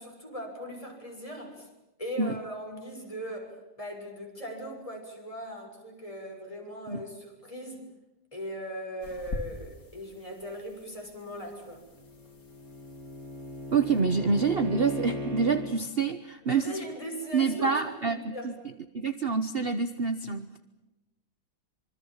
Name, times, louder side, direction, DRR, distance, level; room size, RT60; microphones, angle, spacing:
voice 1, 0.0-1.7 2.0-7.9 8.3-11.8 16.4-18.6, equal, 20° left, 1 dB, 6.7 m, -39 dB
sound 1, 9.0-14.0, left 2 dB, 60° left, 3.5 m, -44 dB
Bowed string instrument, 11.8-15.8, left 2 dB, 60° right, 3.8 m, -38 dB
voice 2, 13.7-16.8 17.3-18.5 18.9-20.5, right 5 dB, 40° right, 10 dB, 1.3 m, -27 dB
26.0 x 25.0 x 7.3 m, 1.0 s
omnidirectional pair, 1.7 m